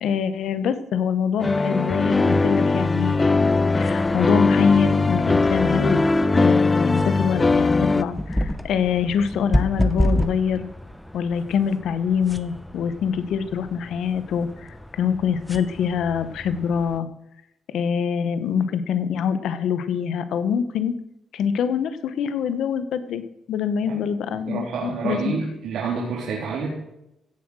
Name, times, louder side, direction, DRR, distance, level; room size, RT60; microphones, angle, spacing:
voice 1, 0.0-3.3 3.8-6.0 6.3-10.7 11.1-17.1 17.7-21.0 21.3-23.2 23.5-25.4, left 7 dB, 75° left, 12 dB, 1.3 m, -24 dB
sound 1, 1.4-8.0, left 3 dB, 20° left, 0.6 m, -20 dB
sound 2, 3.4-17.0, left 1 dB, 5° left, 1.0 m, -31 dB
voice 2, 24.5-26.7, right 5 dB, 75° right, -4 dB, 3.7 m, -28 dB
16.5 x 7.6 x 6.4 m, 0.85 s
cardioid pair, 90°, 0 cm